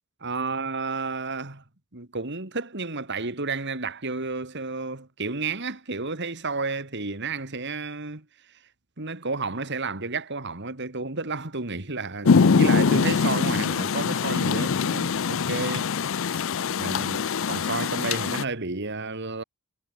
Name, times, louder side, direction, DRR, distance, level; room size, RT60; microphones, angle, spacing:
voice 1, 0.2-1.6 1.9-8.2 9.0-15.9 16.8-19.4, right 3 dB, 55° right, 2.7 m, -31 dB
Rain, 12.3-18.4, left 5 dB, 65° left, 0.5 m, -23 dB
head